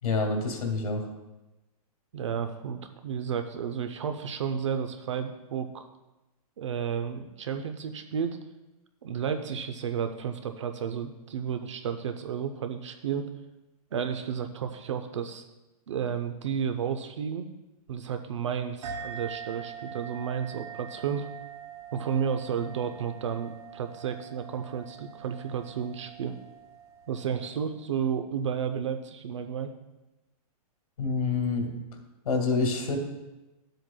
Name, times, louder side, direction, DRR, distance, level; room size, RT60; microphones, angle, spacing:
voice 1, 0.0-1.0 31.0-31.7 32.3-33.0, left 4 dB, 75° left, 2 dB, 1.9 m, -27 dB
voice 2, 2.1-5.9 6.6-8.4 9.0-13.3 13.9-15.5 15.9-17.5 17.9-21.3 21.9-26.3 27.1-29.7, right 7 dB, 50° right, 7 dB, 0.5 m, -32 dB
sound 1, 18.8-27.9, right 7 dB, 80° right, 2.5 m, -44 dB
12.5 x 7.6 x 2.2 m, 1.0 s
hypercardioid pair, 180°, 19 cm